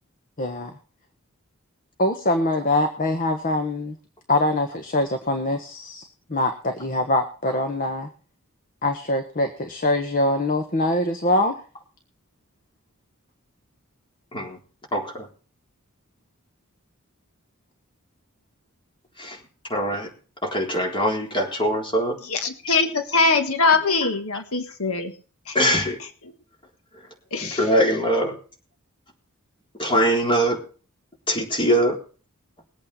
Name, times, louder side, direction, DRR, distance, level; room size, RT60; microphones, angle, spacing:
voice 1, 0.4-0.7 2.0-4.0 4.3-6.0 6.3-8.1 8.8-11.5, left 1 dB, 40° left, 1.4 m, -23 dB
voice 2, 14.9-15.3 19.2-19.4 19.7-20.1 20.4-22.2 25.5-26.0 27.4-28.3 29.8-30.6 31.3-32.0, equal, 25° left, 3.8 m, -22 dB
voice 3, 22.2-25.1 25.4-25.8 27.3-27.7, left 4 dB, 80° left, 1.6 m, -22 dB
21.0 x 8.6 x 4.2 m
head